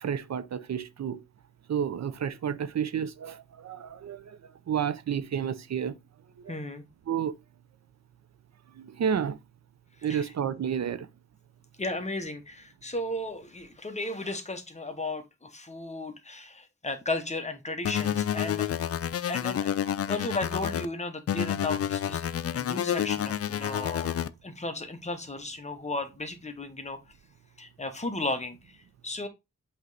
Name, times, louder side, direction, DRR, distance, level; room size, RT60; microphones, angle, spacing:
voice 1, 0.0-1.2 1.7-4.4 4.7-5.9 6.4-6.5 7.1-7.3 8.8-9.4 10.0-11.1, right 8 dB, 65° right, 0.6 m, -30 dB
voice 2, 6.5-6.8 10.1-10.3 11.8-18.9 19.3-24.2 24.4-27.0 27.6-28.8 29.0-29.3, left 2 dB, 25° left, 1.0 m, -35 dB
sound 1, 17.8-20.9 21.3-24.3, left 10 dB, 55° left, 0.4 m, -29 dB
7.9 x 3.1 x 3.9 m
wide cardioid pair, 120°, 29 cm